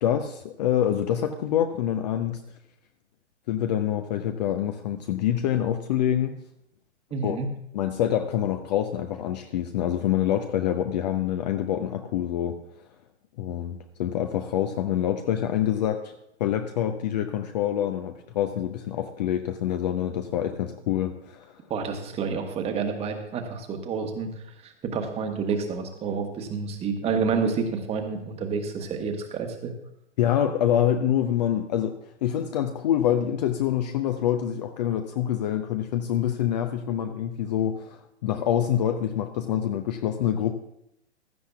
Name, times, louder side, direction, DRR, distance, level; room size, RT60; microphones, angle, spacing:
voice 1, 0.0-2.4 3.5-6.3 7.2-7.4 7.7-12.6 13.4-16.1 16.4-21.6 30.2-31.9 32.2-40.5, left 10 dB, 40° left, 7 dB, 0.7 m, -26 dB
voice 2, 7.1-7.5 21.7-24.3 24.6-29.7, right 5 dB, 15° right, 5 dB, 1.2 m, -29 dB
15.5 x 13.0 x 2.4 m, 0.78 s
figure-of-eight pair, 115°, 35 cm